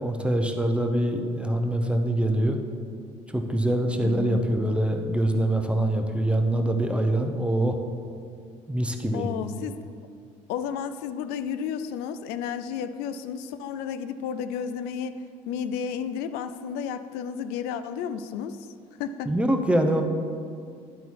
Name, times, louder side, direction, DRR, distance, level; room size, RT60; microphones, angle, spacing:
voice 1, 0.0-2.6 3.3-7.8 8.7-9.3 19.3-20.0, right 1 dB, 5° right, 4 dB, 0.7 m, -24 dB
voice 2, 4.0-4.5 9.1-9.8 10.5-15.2 15.5-18.7 19.0-19.3, left 7 dB, 80° left, 11 dB, 0.4 m, -32 dB
11.0 x 4.0 x 4.6 m, 2.3 s
supercardioid pair, 75°, 16 cm